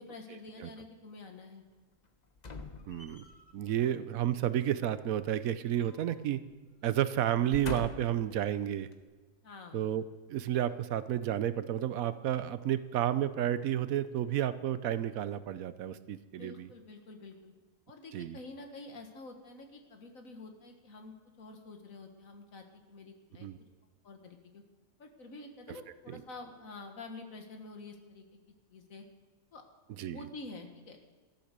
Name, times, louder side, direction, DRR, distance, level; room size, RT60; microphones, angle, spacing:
voice 1, 0.0-1.6 3.7-3.9 9.4-9.8 16.3-17.5 17.9-23.5 24.0-24.6 25.0-28.3 28.7-29.1 29.5-29.6 30.1-31.0, left 3 dB, 70° left, 4 dB, 1.9 m, -48 dB
sound 1, 2.4-3.5 5.1-6.2 6.5-6.7 7.3-8.3 8.9-9.0, left 3 dB, 35° left, 1.0 m, -43 dB
voice 2, 2.9-3.2 3.5-6.4 6.8-8.9 9.7-16.7 18.1-18.4 23.4-23.6 26.1-26.2 30.0-30.2, right 11 dB, 80° right, 14 dB, 1.1 m, -31 dB
13.5 x 11.5 x 6.7 m, 1.3 s
omnidirectional pair, 1.5 m